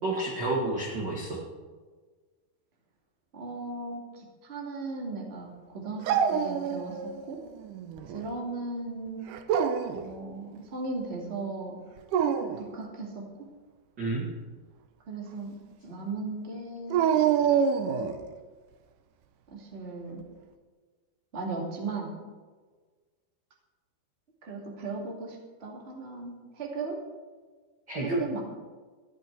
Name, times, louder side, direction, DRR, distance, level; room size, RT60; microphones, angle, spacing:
voice 1, 0.0-1.4 14.0-14.3 27.9-28.2, right 2 dB, 40° right, -3 dB, 1.8 m, -29 dB
voice 2, 3.3-7.0 7.3-7.4 8.0-9.3 9.8-11.8 12.6-13.2 15.1-15.5 15.8-17.0 19.5-20.2 21.3-22.1 24.4-27.0 28.0-28.4, right 3 dB, 20° right, -1 dB, 1.9 m, -37 dB
Dog, 6.1-7.2 7.6-8.3 9.3-10.1 12.0-12.7 16.9-18.2, right 8 dB, 80° right, 1.9 m, -26 dB
14.0 x 11.5 x 4.6 m, 1.4 s
omnidirectional pair, 4.5 m